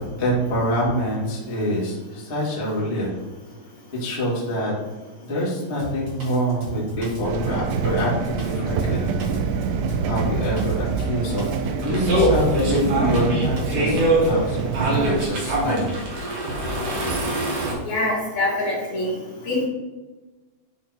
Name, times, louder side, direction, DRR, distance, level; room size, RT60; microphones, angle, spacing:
voice 1, 0.2-3.1 3.9-4.7 5.2-9.1 10.0-11.4 11.8-15.9, equal, 50° left, -7 dB, 0.7 m, -25 dB
Drum kit, 5.8-14.5, right 2 dB, 35° right, 2.0 m, -34 dB
sound 1, 7.2-15.3, right 5 dB, 85° right, 2.4 m, -26 dB
sound 2, 11.8-17.7, right 1 dB, 60° right, 2.2 m, -23 dB
voice 2, 17.8-19.1 19.4-19.6, left 2 dB, 85° left, -6 dB, 1.6 m, -24 dB
10.5 x 3.9 x 3.0 m, 1.2 s
omnidirectional pair, 5.4 m